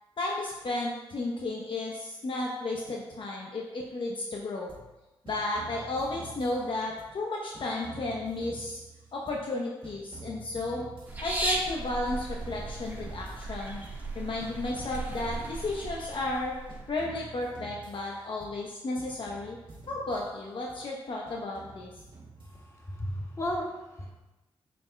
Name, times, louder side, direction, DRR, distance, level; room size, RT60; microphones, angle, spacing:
voice 1, 0.2-4.7 5.2-8.8 9.1-10.9 11.2-13.8 14.1-16.5 16.9-19.6 19.9-21.9, left 2 dB, 60° left, -2 dB, 0.8 m, -33 dB
sound 1, 4.7-5.0 5.3-7.2 7.5-9.6 9.8-11.8 12.1-14.1 14.4-16.3 16.7-18.7 19.0-20.9 21.3-22.9, right 3 dB, 60° right, 2.0 m, -48 dB
sound 2, 11.1-17.0, right 2 dB, 20° right, 1.5 m, -36 dB
voice 2, 22.4-24.1, equal, 30° left, -2 dB, 1.7 m, -35 dB
7.0 x 6.9 x 2.2 m, 1.0 s
cardioid pair, 75°, 10 cm